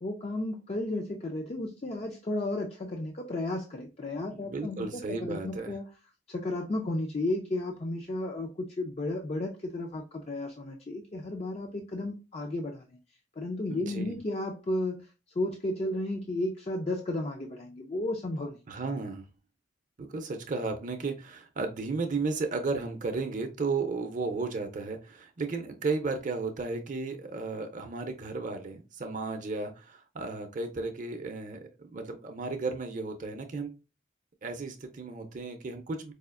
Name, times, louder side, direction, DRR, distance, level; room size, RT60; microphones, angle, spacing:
voice 1, 0.0-5.8 6.3-13.0 13.4-15.1 15.3-18.6, left 2 dB, 35° left, 0.4 m, -33 dB
voice 2, 4.3-5.7 13.7-14.2 18.7-19.3 20.0-33.7 34.4-36.1, right 3 dB, 40° right, 0.5 m, -34 dB
4.8 x 2.4 x 2.4 m
head